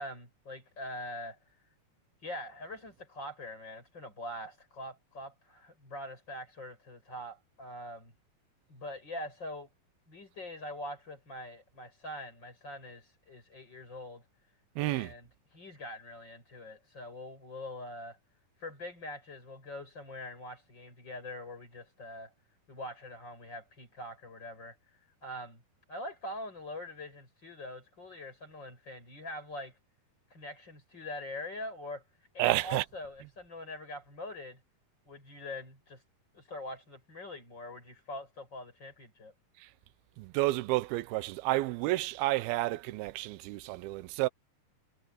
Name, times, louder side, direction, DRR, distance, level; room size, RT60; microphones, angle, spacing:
voice 1, 0.0-1.4 2.2-8.1 8.7-9.7 10.1-14.2 14.8-18.2 18.6-22.3 22.7-24.8 25.2-25.6 25.9-29.8 30.3-32.0 32.3-34.6 35.1-36.0 36.3-39.3, left 1 dB, 30° left, 8.1 m, -43 dB
voice 2, 14.8-15.1 32.4-32.8 40.2-44.3, right 18 dB, 85° right, 2.5 m, -30 dB
omnidirectional pair, 4.3 m